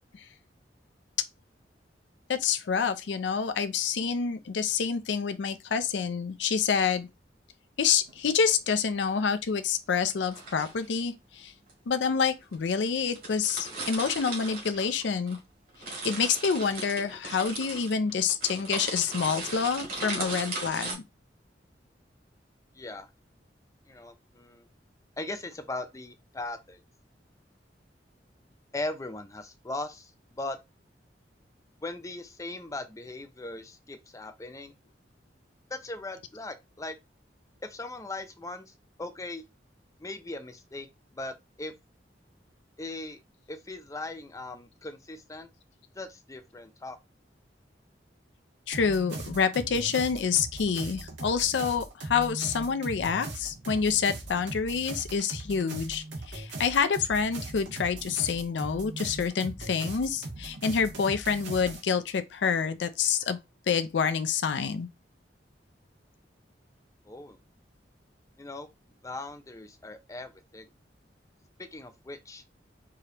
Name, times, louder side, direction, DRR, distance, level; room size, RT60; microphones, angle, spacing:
voice 1, 2.3-7.1 7.8-11.5 11.9-15.4 16.0-21.0 48.7-63.4 63.7-64.9, left 6 dB, 80° left, 0.4 m, -27 dB
sound 1, 8.1-8.3 10.2-10.9 11.7-11.8 12.5-12.6 12.9-13.0 13.1-15.4 15.7-20.9, right 3 dB, 55° right, 2.2 m, -37 dB
voice 2, 22.7-23.1 23.9-24.7 25.2-26.8 28.7-30.6 31.8-34.7 35.7-37.0 37.6-39.4 40.0-40.9 41.1-41.7 42.8-43.2 43.5-45.5 45.9-47.0 67.0-67.4 68.4-68.7 69.0-70.7 71.6-72.4, left 2 dB, 20° left, 0.5 m, -39 dB
sound 2, 48.7-61.8, right 2 dB, 90° right, 1.4 m, -39 dB
4.8 x 2.9 x 2.9 m
head